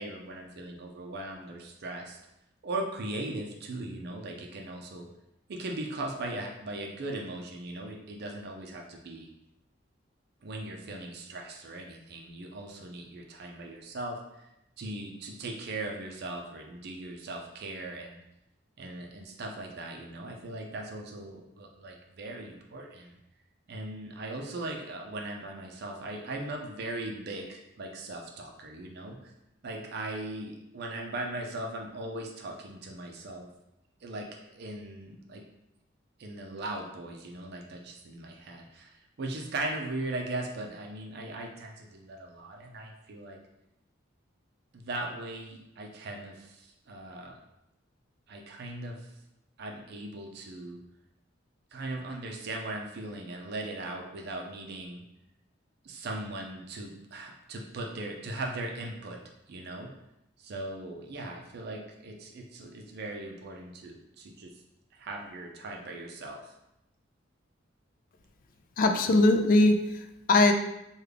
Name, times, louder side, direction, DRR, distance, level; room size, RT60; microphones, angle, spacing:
voice 1, 0.0-2.2 2.6-5.1 5.5-9.3 10.4-14.5 14.8-18.2 18.8-23.2 23.7-29.3 29.6-33.5 34.0-35.4 36.2-43.4 44.7-47.4 48.3-49.1 49.6-50.8 51.7-55.0 55.8-59.2 59.5-59.9 60.4-64.6 64.9-66.5, right 2 dB, 55° right, 1 dB, 0.4 m, -39 dB
voice 2, 68.8-70.5, left 2 dB, 45° left, 5 dB, 0.3 m, -21 dB
3.5 x 2.3 x 3.3 m, 0.87 s
head